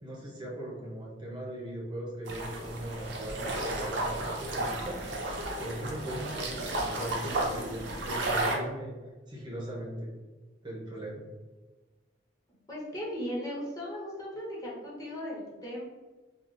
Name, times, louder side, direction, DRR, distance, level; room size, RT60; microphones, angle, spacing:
voice 1, 0.0-8.9 9.3-10.2 10.6-11.2, right 1 dB, 25° right, -4 dB, 0.6 m, -39 dB
sound 1, 2.3-8.6, right 2 dB, 70° right, 0.6 m, -33 dB
voice 2, 12.7-15.8, equal, 20° left, -5 dB, 0.8 m, -37 dB
3.6 x 2.3 x 2.4 m, 1.2 s
head